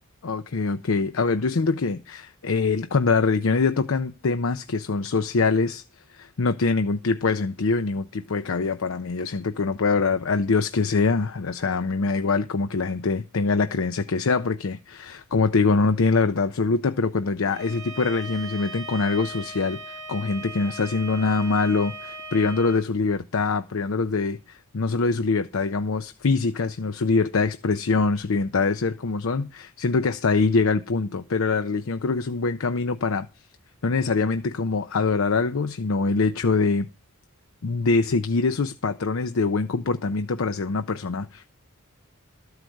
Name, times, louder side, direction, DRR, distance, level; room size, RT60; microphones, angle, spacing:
voice 1, 0.2-5.8 6.1-33.3 33.8-36.9 37.6-41.5, left 4 dB, 65° left, 0.6 m, -24 dB
Bowed string instrument, 17.5-22.8, right 2 dB, 15° right, 3.9 m, -38 dB
13.0 x 4.8 x 7.8 m
head